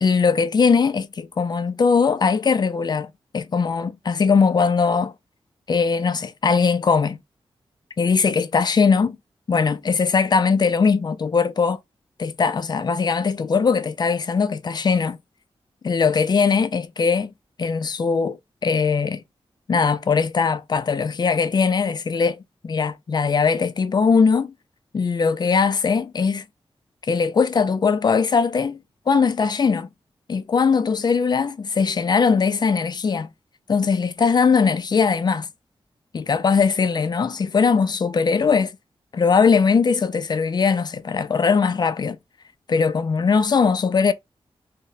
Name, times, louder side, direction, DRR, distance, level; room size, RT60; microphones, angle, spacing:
voice 1, 0.0-5.1 5.7-7.2 8.0-9.2 9.5-11.8 12.2-15.2 15.8-17.3 17.6-19.2 19.7-24.5 24.9-26.4 27.1-29.9 30.3-33.3 33.7-35.5 36.1-38.7 39.1-42.2 42.7-44.1, left 5 dB, 45° left, 0.4 m, -20 dB
2.6 x 2.1 x 3.8 m
wide cardioid pair, 105°, 10 cm